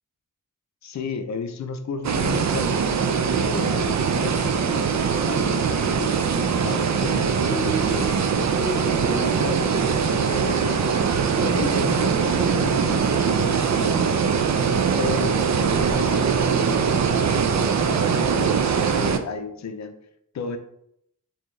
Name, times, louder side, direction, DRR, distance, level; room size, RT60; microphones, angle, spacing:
voice 1, 0.8-3.0 3.3-11.1 11.4-14.1 15.0-19.9 20.3-20.6, left 4 dB, 55° left, 7 dB, 0.5 m, -34 dB
sound 1, 2.0-19.2, right 6 dB, 55° right, 0.4 m, -22 dB
sound 2, 4.6-13.7, right 2 dB, 20° left, 1.0 m, -35 dB
4.3 x 3.5 x 3.1 m, 0.74 s
wide cardioid pair, 115°, 34 cm